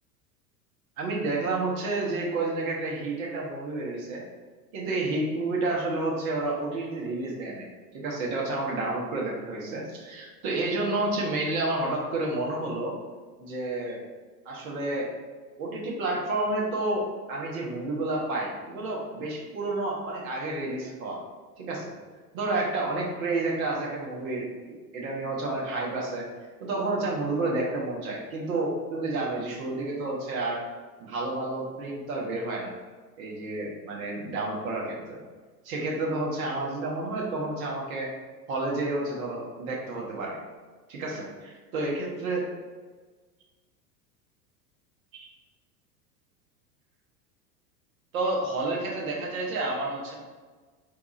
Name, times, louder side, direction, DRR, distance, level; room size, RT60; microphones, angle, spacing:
voice 1, 1.0-4.2 4.7-7.7 7.9-12.9 13.4-14.0 14.4-15.1 15.6-21.2 21.6-21.9 22.3-26.3 26.6-30.6 31.0-32.7 33.2-35.2 35.6-38.1 38.5-40.4 40.9-42.5 45.1-45.3 48.1-50.1, right 2 dB, 60° right, -3 dB, 1.3 m, -30 dB
3.5 x 2.5 x 4.0 m, 1.4 s
hypercardioid pair, 90°, 47 cm